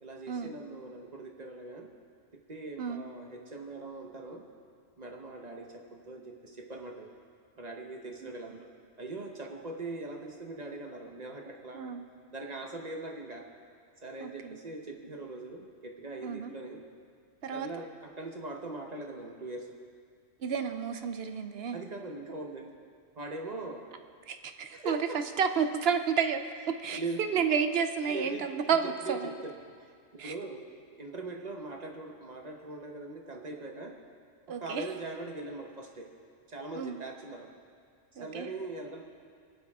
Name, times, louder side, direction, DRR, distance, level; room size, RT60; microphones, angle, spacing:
voice 1, 0.0-1.9 2.3-4.4 5.0-7.1 7.6-8.7 9.0-11.9 12.3-13.5 14.0-16.8 17.5-19.7 21.7-22.7 23.2-23.9 24.7-25.2 26.9-27.4 28.1-28.5 29.0-29.6 30.1-30.6 30.9-34.0 34.5-36.1 36.5-37.5 38.2-39.0, right 2 dB, 35° right, 2 dB, 1.1 m, -41 dB
voice 2, 8.2-8.6 11.7-12.0 14.2-14.6 16.2-16.5 17.4-17.7 20.4-21.8 24.3-25.0 25.4-29.3 30.2-30.3 34.5-34.9 36.7-37.0 38.2-38.5, right 6 dB, 60° right, 8 dB, 0.8 m, -31 dB
23.0 x 8.9 x 3.6 m, 2.2 s
omnidirectional pair, 1.3 m